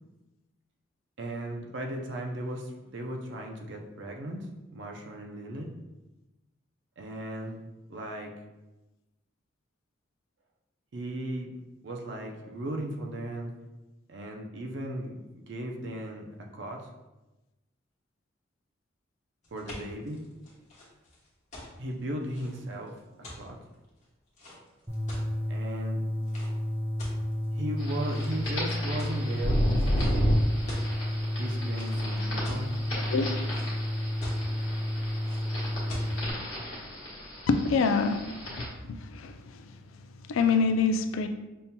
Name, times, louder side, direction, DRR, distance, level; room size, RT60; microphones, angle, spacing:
voice 1, 1.2-4.5 4.7-5.7 7.0-7.6 7.9-8.3 10.9-11.5 11.8-13.5 14.1-16.3 16.5-16.9 19.5-20.2 21.8-23.0 23.4-23.6 25.5-26.0 27.5-30.4 31.4-32.7, right 1 dB, 65° right, 1 dB, 0.5 m, -36 dB
sound 1, 19.4-25.5 26.2-26.5 27.0-27.7 28.1-28.5 29.0-29.4 29.9-30.1 30.4-30.9 31.8-32.7 33.2-33.8 34.2-34.6 35.2-35.4 35.9-36.1, left 1 dB, 35° left, 1.1 m, -43 dB
sound 2, 24.9-36.3, left 1 dB, 10° right, 0.4 m, -31 dB
sound 3, 27.8-38.7, equal, 60° left, 1.1 m, -33 dB
voice 2, 37.5-38.3 38.9-39.3 40.3-41.3, left 4 dB, 85° left, 7 dB, 0.3 m, -25 dB
5.3 x 2.8 x 2.2 m, 1.0 s
head